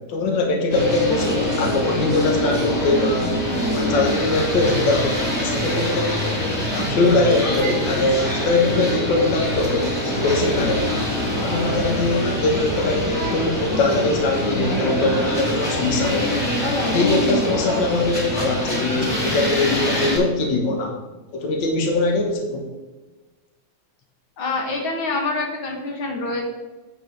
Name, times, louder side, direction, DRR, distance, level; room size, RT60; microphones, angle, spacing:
voice 1, 0.1-3.4 3.7-6.4 6.7-10.9 11.4-16.4 16.8-21.0 21.3-22.7, left 2 dB, 70° left, 2 dB, 1.8 m, -22 dB
sound 1, 0.7-20.2, left 1 dB, 30° left, 2.9 m, -24 dB
voice 2, 24.4-26.4, left 3 dB, 90° left, 1 dB, 2.4 m, -26 dB
8.1 x 4.8 x 6.3 m, 1.2 s
omnidirectional pair, 2.2 m